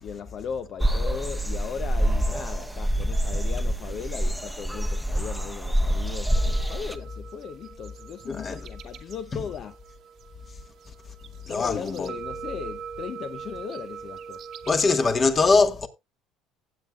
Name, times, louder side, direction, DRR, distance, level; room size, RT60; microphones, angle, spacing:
voice 1, 0.0-9.8 11.5-14.4, left 7 dB, 50° left, 0.6 m, -37 dB
sound 1, 0.8-7.0, equal, ahead, 0.9 m, -26 dB
sound 2, 6.3-15.3, right 7 dB, 55° right, 1.1 m, -42 dB
voice 2, 8.3-8.6 9.3-9.4 11.4-12.1 14.7-15.9, left 4 dB, 35° left, 1.4 m, -22 dB
16.5 x 7.9 x 2.3 m
supercardioid pair, 85°, 0 cm